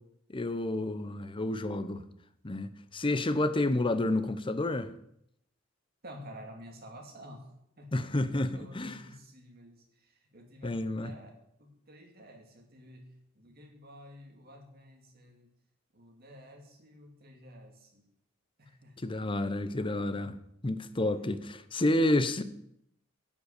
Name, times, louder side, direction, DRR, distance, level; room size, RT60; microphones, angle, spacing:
voice 1, 0.3-2.0 2.4-4.9 7.9-9.0 10.6-11.1 19.0-20.4 20.6-22.4, left 1 dB, 25° left, 0.7 m, -30 dB
voice 2, 6.0-15.5 15.9-18.1 18.6-19.0, equal, 50° right, 2.2 m, -51 dB
11.5 x 5.4 x 8.3 m
head